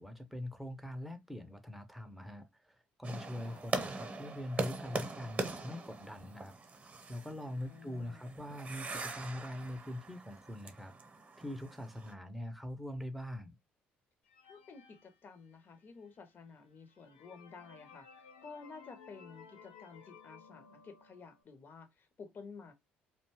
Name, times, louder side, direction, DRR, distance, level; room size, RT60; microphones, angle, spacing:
voice 1, 0.0-10.9 11.4-13.6, left 1 dB, ahead, 0.6 m, -43 dB
sound 1, 3.0-12.1, right 3 dB, 30° right, 0.8 m, -42 dB
voice 2, 7.7-8.3 14.4-22.7, left 4 dB, 45° left, 0.7 m, -52 dB
sound 2, 14.2-15.9 16.4-16.5 16.9-21.4, left 6 dB, 80° left, 0.4 m, -57 dB
2.6 x 2.2 x 2.9 m
figure-of-eight pair, 50°, 5 cm